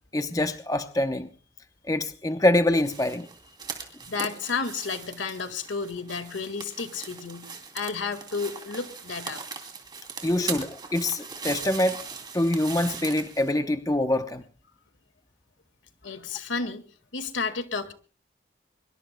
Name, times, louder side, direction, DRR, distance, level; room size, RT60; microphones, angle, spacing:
voice 1, 0.1-1.3 1.9-3.3 10.2-12.0 12.3-14.4, left 1 dB, 20° left, 8 dB, 0.8 m, -25 dB
sound 1, 2.8-13.5, right 5 dB, 25° right, 2.9 m, -39 dB
voice 2, 4.1-9.4 10.3-10.5 16.0-16.8 17.1-17.9, left 4 dB, 90° left, 9 dB, 1.8 m, -32 dB
24.5 x 23.0 x 2.2 m, 0.39 s
head